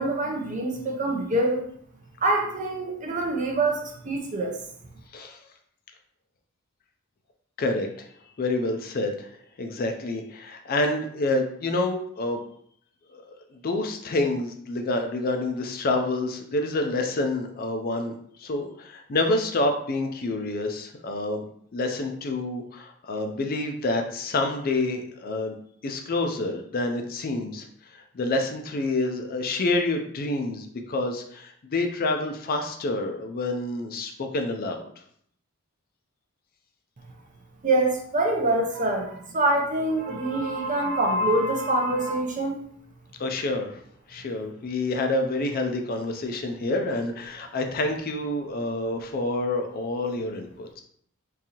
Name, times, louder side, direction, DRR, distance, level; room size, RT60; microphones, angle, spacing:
voice 1, 0.0-1.6 2.2-4.5 37.6-42.5, right 2 dB, 35° right, 1 dB, 0.6 m, -25 dB
voice 2, 7.6-8.1 8.4-9.3 9.6-12.4 13.1-21.4 21.7-25.6 25.8-27.7 27.9-34.9 43.2-43.8 44.1-50.8, left 2 dB, 45° left, 5 dB, 0.4 m, -28 dB
3.8 x 2.7 x 2.9 m, 0.64 s
head